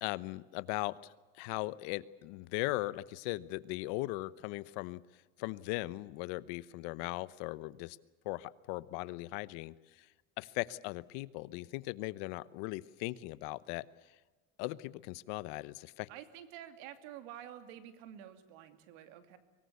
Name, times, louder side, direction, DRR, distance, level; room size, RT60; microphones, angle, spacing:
voice 1, 0.0-5.0 5.4-8.0 8.2-10.1 10.4-13.8 14.6-16.1, left 20 dB, 75° left, 18 dB, 1.0 m, -38 dB
voice 2, 16.1-19.4, right 11 dB, 75° right, 10 dB, 2.6 m, -49 dB
24.5 x 19.5 x 8.3 m, 1.3 s
cardioid pair, 160°, 31 cm